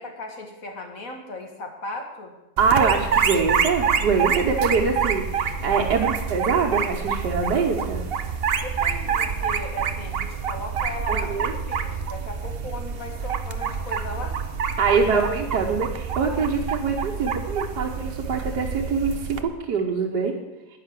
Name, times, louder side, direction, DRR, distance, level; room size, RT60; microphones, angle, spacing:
voice 1, 0.0-2.4 8.6-14.4 14.9-15.2, left 2 dB, 50° left, 3 dB, 2.1 m, -37 dB
sound 1, 2.6-19.4, right 6 dB, 50° right, 0.7 m, -27 dB
voice 2, 2.6-8.0 11.1-11.5 14.8-20.3, right 5 dB, 70° right, -2 dB, 1.7 m, -24 dB
10.0 x 9.9 x 7.6 m, 1.0 s
omnidirectional pair, 1.9 m